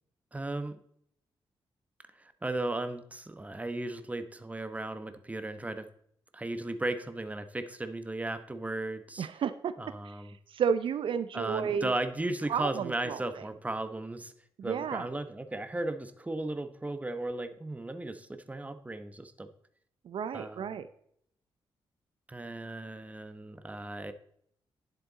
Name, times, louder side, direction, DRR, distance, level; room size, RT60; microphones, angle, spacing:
voice 1, 0.3-0.8 2.2-5.9 6.3-9.3 9.8-10.3 11.3-14.3 14.6-19.5 20.3-20.8 22.3-24.1, right 2 dB, 15° right, 10 dB, 1.1 m, -36 dB
voice 2, 9.2-9.7 10.0-10.1 10.5-11.9 12.5-13.2 14.6-15.1 20.0-20.9, right 7 dB, 65° right, 13 dB, 0.6 m, -32 dB
10.0 x 7.9 x 4.1 m, 0.68 s
cardioid pair, 80°, 9 cm